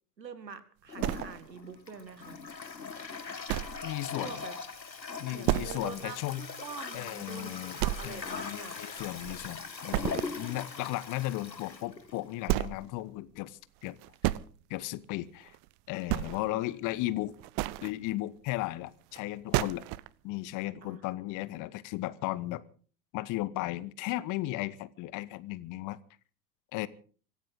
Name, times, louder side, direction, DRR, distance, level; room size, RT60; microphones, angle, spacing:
voice 1, 0.2-2.4 4.2-4.6 5.3-8.8 16.4-16.6 20.8-21.0, right 6 dB, 80° right, 13 dB, 2.1 m, -45 dB
Toilet flush, 0.9-12.7, left 5 dB, 85° left, 1.8 m, -41 dB
sound 1, 1.0-1.7 2.2-2.3 2.8-2.9 3.5-3.9 4.2-4.3 4.7-4.8 5.4-6.0 6.4-6.5 6.9-7.0 7.8-8.4 8.7-9.5 9.9-10.4 11.8-11.9 12.4-12.9 13.8-14.4 15.5-15.7 16.0-16.6 17.3-17.9 19.1-19.2 19.5-20.1, right 17 dB, 40° right, 0.8 m, -31 dB
voice 2, 3.8-4.3 5.2-6.5 6.9-14.0 14.7-15.5 15.9-17.3 17.8-19.8 20.2-22.6 23.1-26.0 26.7-26.9, left 17 dB, 40° left, 18 dB, 1.2 m, -35 dB
25.0 x 15.0 x 3.8 m, 0.41 s
figure-of-eight pair, 85°, 50 cm